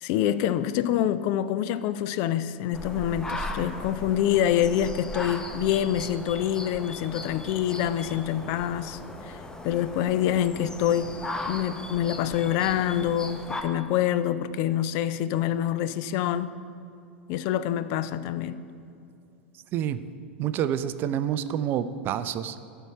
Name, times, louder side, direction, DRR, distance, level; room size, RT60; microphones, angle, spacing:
voice 1, 0.0-11.1 11.5-16.6 17.3-18.6, left 11 dB, 40° left, 0.4 m, -26 dB
sound 1, 2.7-13.6, left 2 dB, 10° left, 0.7 m, -37 dB
voice 2, 20.4-22.6, right 10 dB, 30° right, 0.4 m, -28 dB
13.5 x 4.6 x 6.5 m
figure-of-eight pair, 90°, 6 cm